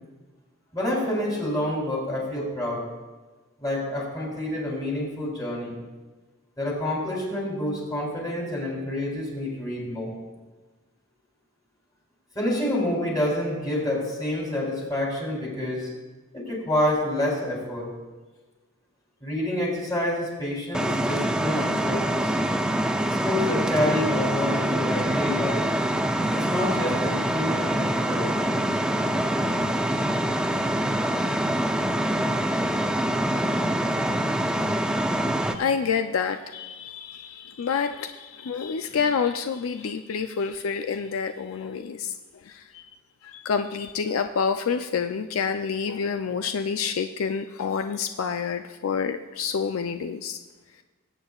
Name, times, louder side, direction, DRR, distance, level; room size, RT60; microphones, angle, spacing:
voice 1, 0.7-2.8 3.6-5.7 6.6-10.1 12.3-15.9 16.3-17.9 19.2-22.3 23.1-25.6 26.3-28.3 34.7-34.8, left 1 dB, 20° left, -3 dB, 3.2 m, -28 dB
sound 1, 20.7-35.5, right 1 dB, 5° right, 0.4 m, -25 dB
voice 2, 35.5-42.8 43.2-50.4, left 6 dB, 70° left, 8 dB, 0.4 m, -28 dB
20.0 x 8.8 x 2.4 m, 1.2 s
head